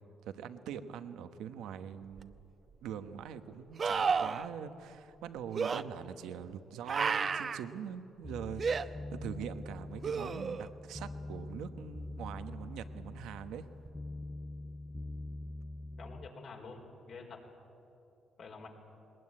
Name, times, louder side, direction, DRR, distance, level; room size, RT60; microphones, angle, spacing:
voice 1, 0.2-2.4 2.8-13.7, right 8 dB, 90° right, 10 dB, 1.0 m, -43 dB
sound 1, 2.2-2.3 3.8-4.5 5.5-5.8 6.9-7.6 8.6-8.8 10.0-10.7 13.9-14.0, right 5 dB, 45° right, 0.8 m, -31 dB
sound 2, 8.2-16.3, left 2 dB, 10° left, 0.5 m, -44 dB
voice 2, 16.0-17.4 18.4-18.7, left 4 dB, 60° left, 1 dB, 4.5 m, -48 dB
20.5 x 20.0 x 9.9 m, 2.8 s
cardioid pair, 90°, 0 cm